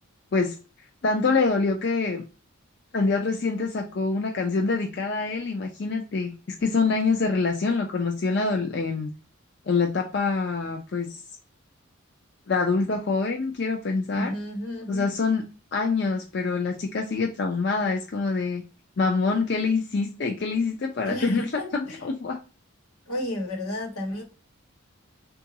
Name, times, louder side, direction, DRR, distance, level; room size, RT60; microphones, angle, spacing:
voice 1, 1.0-2.2 2.9-6.3 6.6-9.1 9.7-11.2 12.5-14.3 14.9-15.5 15.7-18.6 19.0-21.4 21.7-22.4, left 4 dB, 50° left, 0.4 m, -25 dB
voice 2, 14.1-15.1 21.0-22.0 23.1-24.2, left 1 dB, 85° left, 1.2 m, -32 dB
3.8 x 2.4 x 2.7 m
head